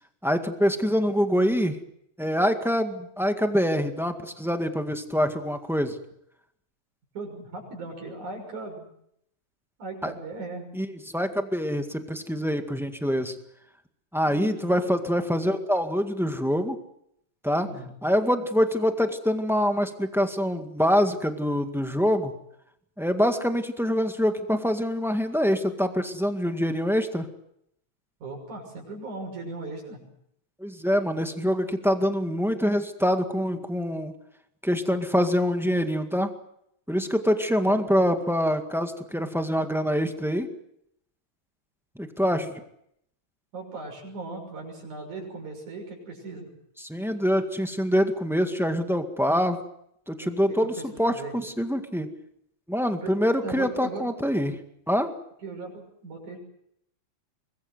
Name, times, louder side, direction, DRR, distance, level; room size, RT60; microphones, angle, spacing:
voice 1, 0.2-1.8 2.2-6.0 10.0-10.1 10.7-13.3 14.1-16.8 17.4-17.7 18.0-22.3 23.0-27.3 30.6-34.1 34.6-36.3 36.9-40.5 42.0-42.6 46.8-49.6 50.1-52.1 52.7-54.6 54.9-55.1, equal, ahead, 6 dB, 1.1 m, -25 dB
voice 2, 7.1-8.9 9.8-10.7 14.2-14.9 17.6-17.9 28.2-30.0 37.7-38.0 43.5-46.5 50.5-51.4 53.0-54.0 55.4-56.4, right 3 dB, 85° right, 2 dB, 7.7 m, -38 dB
24.5 x 21.0 x 7.9 m, 0.74 s
omnidirectional pair, 3.4 m